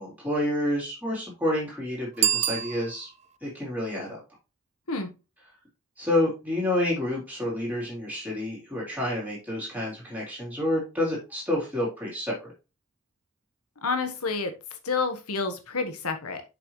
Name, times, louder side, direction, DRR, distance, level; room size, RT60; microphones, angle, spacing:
voice 1, 0.0-3.1 3.4-4.2 6.0-12.5, left 1 dB, 5° right, -5 dB, 3.9 m, -29 dB
Bicycle bell, 2.1-3.4, right 10 dB, 30° right, 0.3 m, -27 dB
voice 2, 13.8-14.5 14.8-16.4, left 4 dB, 80° left, 7 dB, 1.4 m, -29 dB
7.6 x 5.9 x 3.2 m, 0.28 s
head